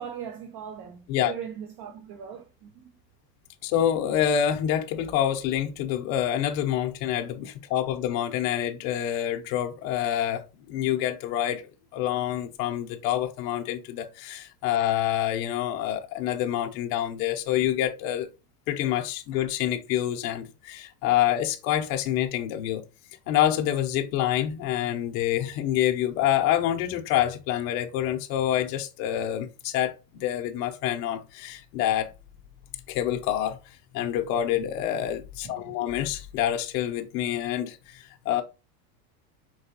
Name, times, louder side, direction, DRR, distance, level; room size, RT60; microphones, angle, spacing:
voice 1, 0.0-2.9 35.4-35.6, right 8 dB, 50° right, 0.9 m, -39 dB
voice 2, 3.6-18.3 18.7-22.8 23.3-29.9 30.2-32.1 32.9-38.4, left 11 dB, 55° left, 0.8 m, -27 dB
4.7 x 3.1 x 2.8 m
supercardioid pair, 115°, 48 cm